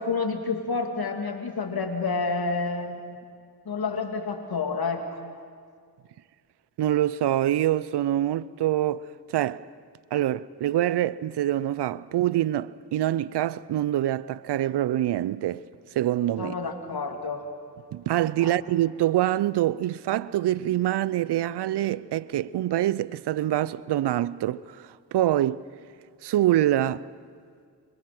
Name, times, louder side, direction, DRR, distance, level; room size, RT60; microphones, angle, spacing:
voice 1, 0.0-3.2 3.6-5.0 16.4-17.5 18.4-18.5, left 4 dB, 65° left, 2.8 m, -29 dB
voice 2, 6.8-9.1 9.3-9.6 10.1-15.6 16.0-16.5 17.9-24.6 25.1-25.6 26.2-27.1, right 13 dB, 85° right, 0.6 m, -25 dB
25.0 x 23.0 x 6.1 m
supercardioid pair, 40°, 40 cm